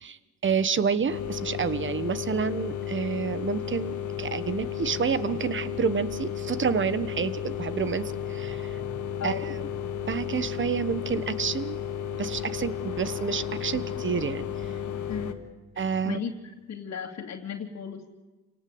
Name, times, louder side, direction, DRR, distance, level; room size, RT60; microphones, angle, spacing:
voice 1, 0.0-8.8 9.2-9.5 10.1-11.8 12.2-14.5 15.8-16.2, right 6 dB, 40° right, 15 dB, 1.4 m, -29 dB
sound 1, 1.1-15.3, left 9 dB, 85° left, 2.0 m, -33 dB
voice 2, 9.2-9.6 15.1-15.5 16.0-16.3 16.7-18.1, left 7 dB, 60° left, -2 dB, 2.5 m, -35 dB
28.0 x 18.0 x 8.0 m, 1.2 s
cardioid pair, 90°, 30 cm